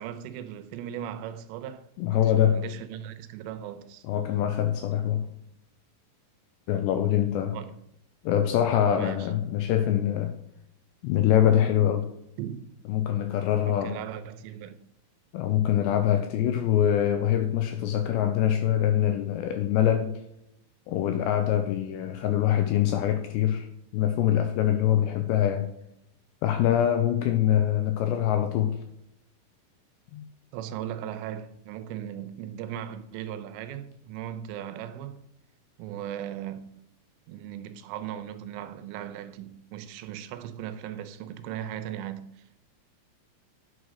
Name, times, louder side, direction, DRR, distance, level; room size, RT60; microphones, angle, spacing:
voice 1, 0.0-4.0 7.5-7.8 8.9-9.3 12.4-12.7 13.7-14.8 30.5-35.2 35.8-36.7 37.3-42.4, right 10 dB, 80° right, 3.3 m, -38 dB
voice 2, 2.0-2.7 4.0-5.3 6.7-7.6 8.2-10.3 11.0-12.1 12.9-14.0 15.3-20.2 20.9-23.7 23.9-25.7 26.4-28.8 30.1-30.2, left 10 dB, 85° left, 2.5 m, -24 dB
10.0 x 6.5 x 6.3 m
omnidirectional pair, 5.7 m